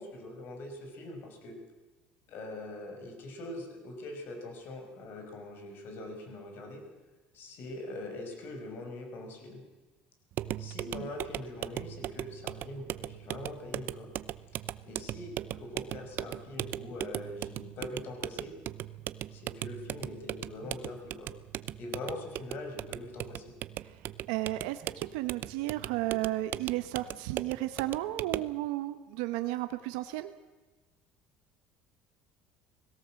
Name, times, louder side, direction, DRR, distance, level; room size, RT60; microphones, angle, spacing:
voice 1, 0.0-1.6 2.3-6.8 7.3-9.6 10.6-14.1 14.8-18.5 19.3-21.3 21.7-23.5, left 2 dB, 60° left, 4 dB, 5.8 m, -43 dB
sound 1, 10.3-28.6, right 12 dB, 55° right, 0.7 m, -39 dB
voice 2, 24.3-30.3, right 16 dB, 90° right, 10 dB, 1.1 m, -33 dB
20.5 x 17.5 x 7.7 m, 1.2 s
cardioid pair, 115°, 4 cm